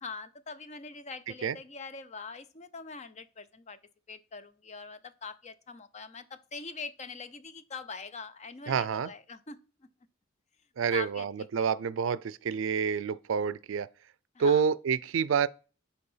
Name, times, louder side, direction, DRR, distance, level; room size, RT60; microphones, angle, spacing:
voice 1, 0.0-3.8 4.1-9.9 10.9-11.3 14.3-14.6, left 4 dB, 35° left, 0.6 m, -43 dB
voice 2, 8.7-9.1 10.8-13.9 14.4-15.5, right 6 dB, 70° right, 0.4 m, -28 dB
6.7 x 4.5 x 5.5 m
head